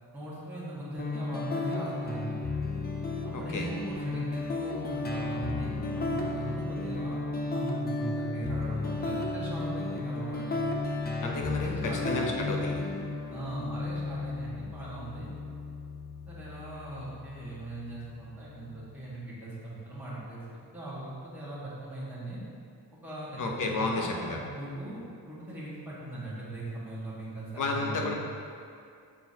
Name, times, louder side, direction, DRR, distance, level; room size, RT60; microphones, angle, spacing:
voice 1, 0.1-2.5 3.2-7.2 7.5-10.6 11.6-12.7 13.3-15.3 16.3-20.4 20.7-22.4 23.0-25.0 25.3-28.1, right 2 dB, 5° right, -10 dB, 1.8 m, -39 dB
sound 1, 1.0-18.9, left 3 dB, 25° left, 0.5 m, -34 dB
voice 2, 3.3-3.7 11.2-11.8 12.0-12.8 23.4-24.4 27.6-28.1, left 3 dB, 55° left, 0 dB, 1.0 m, -31 dB
8.4 x 6.3 x 2.9 m, 2.3 s
wide cardioid pair, 155°, 38 cm